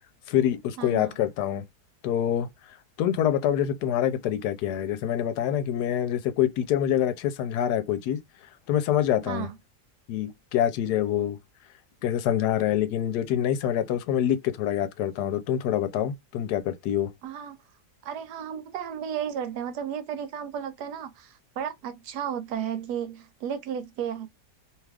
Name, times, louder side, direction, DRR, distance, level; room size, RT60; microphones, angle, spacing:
voice 1, 0.3-1.6 2.0-8.2 8.7-9.5 10.1-11.4 12.0-17.1, left 10 dB, 90° left, 1.2 m, -26 dB
voice 2, 0.8-1.1 9.3-9.5 17.2-17.6 18.0-24.3, right 8 dB, 90° right, 1.2 m, -33 dB
2.9 x 2.4 x 3.3 m
omnidirectional pair, 1.7 m